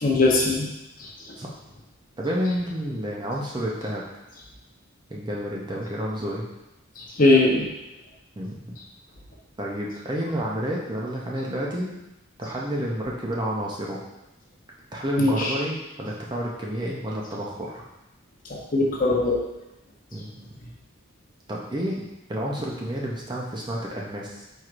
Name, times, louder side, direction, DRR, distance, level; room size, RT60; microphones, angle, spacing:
voice 1, 0.0-0.7 7.2-7.7 15.2-15.5 18.7-19.4, left 2 dB, 40° left, -2 dB, 0.8 m, -19 dB
voice 2, 2.2-4.1 5.1-6.5 8.4-8.7 9.6-11.9 12.4-14.0 14.9-17.8 20.1-20.4 21.5-22.0 22.3-24.5, equal, 20° right, -3 dB, 0.5 m, -30 dB
4.6 x 4.5 x 2.5 m, 0.94 s
head